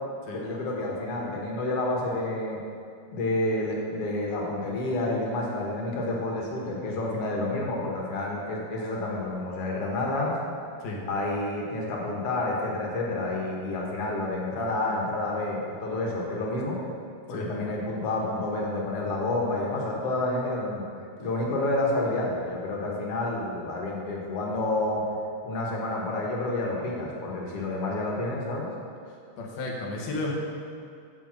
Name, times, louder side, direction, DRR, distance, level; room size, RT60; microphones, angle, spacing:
voice 1, 0.3-2.6 3.1-10.4 11.1-16.8 17.3-20.8 21.2-25.0 25.4-28.7, left 2 dB, 55° left, -2 dB, 2.0 m, -29 dB
voice 2, 29.4-30.3, left 2 dB, 80° left, -2 dB, 2.8 m, -33 dB
7.5 x 5.1 x 7.3 m, 2.4 s
omnidirectional pair, 3.6 m